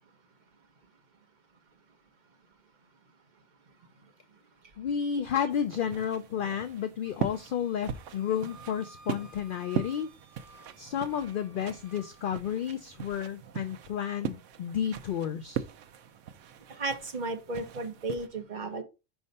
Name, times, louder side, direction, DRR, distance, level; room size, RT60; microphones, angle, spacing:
voice 1, 4.8-10.1 10.8-15.6, left 8 dB, 60° left, 0.6 m, -32 dB
sound 1, 5.5-18.3, right 10 dB, 85° right, 1.0 m, -40 dB
Wind instrument woodwind instrument, 7.1-12.3, right 3 dB, 65° right, 1.4 m, -54 dB
voice 2, 16.7-18.8, right 2 dB, 40° right, 1.0 m, -34 dB
5.4 x 3.5 x 5.2 m
omnidirectional pair, 1.2 m